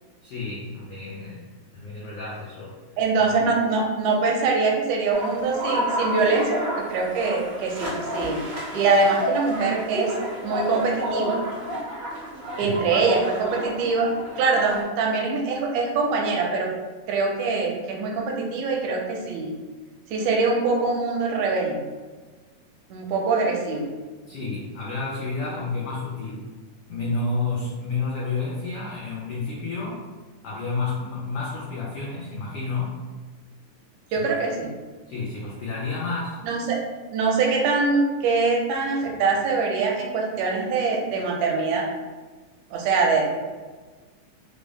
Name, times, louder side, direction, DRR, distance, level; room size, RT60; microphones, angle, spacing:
voice 1, 0.2-1.4 1.7-2.7 3.2-3.4 12.6-12.8 24.2-26.5 26.9-30.0 30.4-33.0 34.2-34.3 35.1-36.4, left 3 dB, 85° left, -6 dB, 1.3 m, -30 dB
voice 2, 3.0-8.4 8.7-10.1 10.4-11.4 12.6-14.1 14.4-16.7 17.1-19.5 20.1-21.8 22.9-23.9 34.1-34.7 36.5-36.8 37.1-41.9 42.7-43.4, right 4 dB, 80° right, 0 dB, 2.0 m, -23 dB
sound 1, 5.1-14.8, equal, 65° right, 1.0 m, -30 dB
5.0 x 2.0 x 3.3 m, 1.3 s
omnidirectional pair, 3.5 m